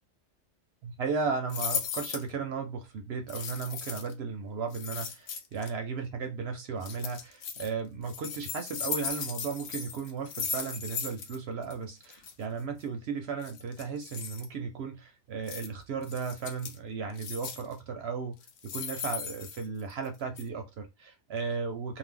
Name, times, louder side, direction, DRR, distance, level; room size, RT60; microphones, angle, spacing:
voice 1, 0.8-18.4 18.6-22.0, right 5 dB, 60° right, 0.7 m, -35 dB
sound 1, 1.5-2.3 3.3-4.1 4.7-5.7 6.8-7.7 8.0-11.4 11.6-11.7 12.0-12.3 13.4-14.5 15.5-15.7 16.0-16.8 17.2-17.7 18.4-20.1 20.4-20.5, left 6 dB, 70° left, 0.9 m, -37 dB
2.6 x 2.1 x 3.7 m
omnidirectional pair, 1.4 m